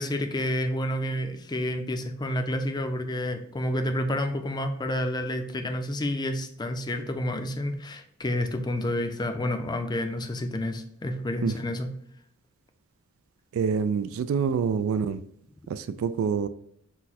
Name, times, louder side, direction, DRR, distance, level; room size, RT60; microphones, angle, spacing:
voice 1, 0.0-11.9, left 1 dB, 20° left, 6 dB, 0.4 m, -29 dB
voice 2, 13.5-15.2 15.7-16.5, right 6 dB, 80° right, 13 dB, 0.3 m, -26 dB
6.1 x 2.1 x 4.1 m, 0.70 s
head